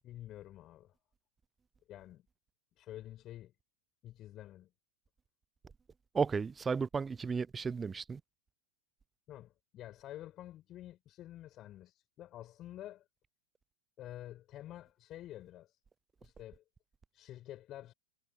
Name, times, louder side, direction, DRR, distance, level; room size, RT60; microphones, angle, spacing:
voice 1, 0.0-0.9 1.9-2.2 2.8-3.5 4.0-4.7 9.3-13.0 14.0-15.7 16.2-16.6 17.1-17.9, left 13 dB, 35° left, 7.6 m, -49 dB
voice 2, 6.1-8.2, right 5 dB, 15° right, 0.7 m, -33 dB
figure-of-eight pair, 90°, 0 cm